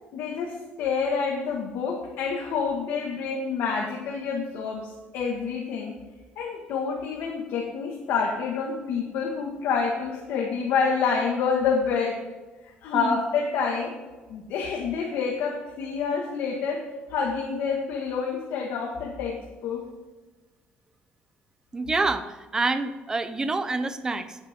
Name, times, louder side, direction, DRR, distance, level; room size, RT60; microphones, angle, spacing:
voice 1, 0.1-5.9 6.4-12.2 12.8-13.9 14.3-16.8 17.1-19.8, left 5 dB, 85° left, -1 dB, 1.9 m, -28 dB
voice 2, 21.7-24.4, right 3 dB, 15° right, 10 dB, 0.8 m, -27 dB
16.5 x 8.8 x 3.8 m, 1.2 s
cardioid pair, 150°, 4 cm